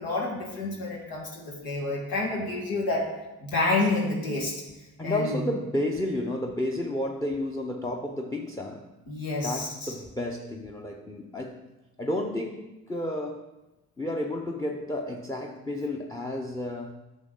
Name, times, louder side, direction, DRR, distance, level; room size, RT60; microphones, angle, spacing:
voice 1, 0.0-3.1 3.4-4.6 5.0-5.5 9.1-9.9, left 2 dB, 85° left, -2 dB, 1.8 m, -29 dB
voice 2, 5.0-8.9 9.4-11.7 12.0-13.5 14.0-16.9, left 1 dB, 10° left, 3 dB, 0.7 m, -31 dB
8.7 x 6.4 x 3.8 m, 0.99 s
supercardioid pair, 65°, 35 cm